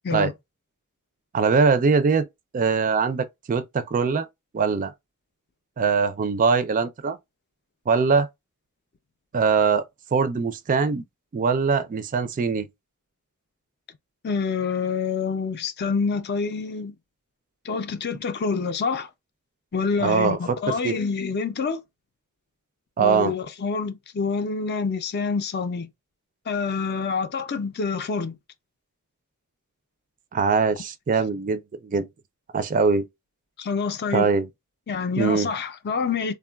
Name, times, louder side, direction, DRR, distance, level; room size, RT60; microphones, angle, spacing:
voice 1, 1.3-2.3 2.5-4.3 4.5-4.9 5.8-7.2 7.9-8.3 9.3-9.8 10.1-11.0 11.3-12.7 20.0-20.4 20.7-20.9 23.0-23.3 30.3-32.1 32.5-33.1 34.1-34.5 35.2-35.5, right 5 dB, 35° right, 0.4 m, -22 dB
voice 2, 14.2-16.9 17.6-19.1 19.7-21.8 23.0-25.9 26.5-28.4 33.6-34.3 34.9-36.3, left 5 dB, 50° left, 0.5 m, -27 dB
3.4 x 2.3 x 2.2 m
head